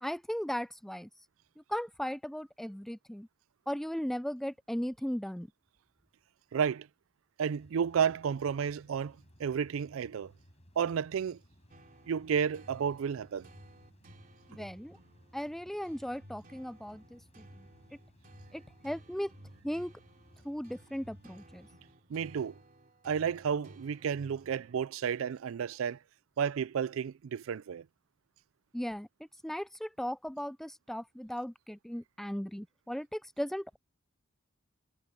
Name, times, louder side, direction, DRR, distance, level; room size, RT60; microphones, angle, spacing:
voice 1, 0.0-1.1 1.7-3.3 3.7-5.5 14.5-15.0 15.3-17.7 18.5-19.3 19.6-19.9 20.4-21.7 28.7-29.1 29.4-33.8, equal, ahead, 0.3 m, -37 dB
voice 2, 6.5-6.9 7.4-10.3 10.8-11.4 12.1-13.5 22.1-22.5 23.0-26.0 26.4-27.8, right 7 dB, 80° right, 0.4 m, -32 dB
sound 1, 7.6-21.9, equal, 35° left, 5.9 m, -62 dB
sound 2, 11.7-25.2, right 1 dB, 45° right, 2.7 m, -56 dB
head